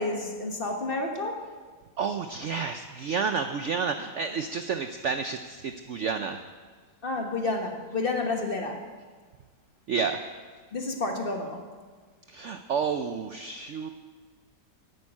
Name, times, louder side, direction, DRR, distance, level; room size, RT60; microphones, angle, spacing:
voice 1, 0.0-1.4 7.0-8.8 10.7-11.6, left 2 dB, 35° left, 3 dB, 1.3 m, -30 dB
voice 2, 2.0-6.4 9.9-10.2 12.3-13.9, right 5 dB, 65° right, 8 dB, 0.7 m, -30 dB
11.0 x 8.0 x 8.8 m, 1.5 s
omnidirectional pair, 1.8 m